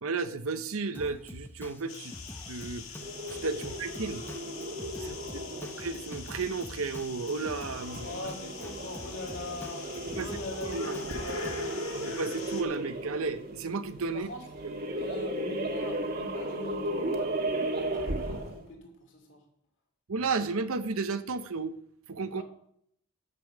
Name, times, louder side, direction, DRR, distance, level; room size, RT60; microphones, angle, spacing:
voice 1, 0.0-2.1 2.5-2.9 3.4-4.2 5.0-5.2 5.8-8.1 10.2-10.3 10.7-10.9 12.0-14.3 20.1-21.7 22.1-22.4, right 4 dB, 75° right, 10 dB, 0.7 m, -33 dB
Drum kit, 0.9-11.6, left 1 dB, 10° left, 0.8 m, -46 dB
sound 1, 1.9-12.6, left 6 dB, 70° left, 1.8 m, -45 dB
sound 2, 3.0-18.7, right 1 dB, 45° right, 1.4 m, -35 dB
voice 2, 5.0-5.7 8.0-11.6 14.1-14.5 14.9-17.5 17.8-19.4 22.4-22.5, left 2 dB, 55° left, 0 dB, 2.5 m, -43 dB
9.7 x 6.9 x 7.2 m, 0.69 s
head